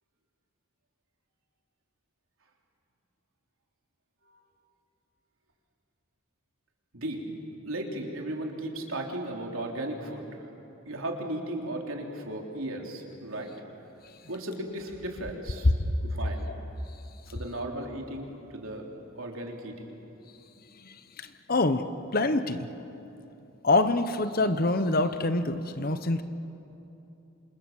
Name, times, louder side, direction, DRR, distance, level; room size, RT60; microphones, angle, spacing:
voice 1, 6.9-7.2 7.6-10.5 10.9-13.5 14.3-15.7 16.0-16.4 17.3-18.9 19.2-19.9, right 1 dB, 80° right, 1 dB, 3.5 m, -36 dB
voice 2, 20.8-21.8 22.1-22.7 23.6-26.2, left 2 dB, 45° left, 10 dB, 1.1 m, -26 dB
28.0 x 26.5 x 7.4 m, 2.9 s
head